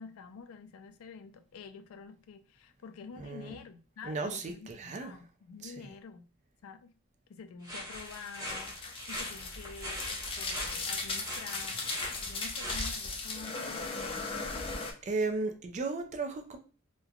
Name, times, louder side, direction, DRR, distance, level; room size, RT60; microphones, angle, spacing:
voice 1, 0.0-6.3 6.6-6.9 7.3-14.6, left 5 dB, 90° left, 0.4 m, -48 dB
voice 2, 3.2-3.6 4.0-5.2 5.6-5.9 15.0-16.6, right 3 dB, 35° right, 0.4 m, -35 dB
sound 1, 7.6-12.9, equal, 15° right, 1.2 m, -41 dB
sound 2, 7.9-14.9, left 3 dB, 25° left, 0.4 m, -37 dB
3.1 x 2.2 x 2.3 m
head